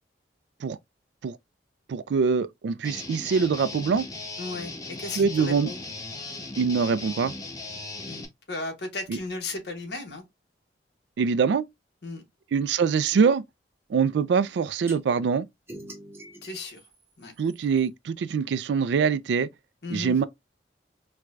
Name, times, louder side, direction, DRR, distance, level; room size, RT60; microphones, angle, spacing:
voice 1, 1.9-4.1 5.2-5.7 6.6-7.3 9.1-9.2 11.2-11.7 12.5-13.4 13.9-15.5 17.4-19.5 19.9-20.3, right 5 dB, 75° right, 0.3 m, -24 dB
Guitar, 2.8-8.3, left 2 dB, 20° left, 0.6 m, -38 dB
voice 2, 4.4-5.8 8.1-10.2 12.0-12.2 16.4-16.8 17.2-17.3 19.8-20.2, left 3 dB, 65° left, 1.0 m, -35 dB
sound 1, 14.9-15.0 15.7-17.9, right 1 dB, 15° right, 0.7 m, -45 dB
4.5 x 2.2 x 2.4 m
head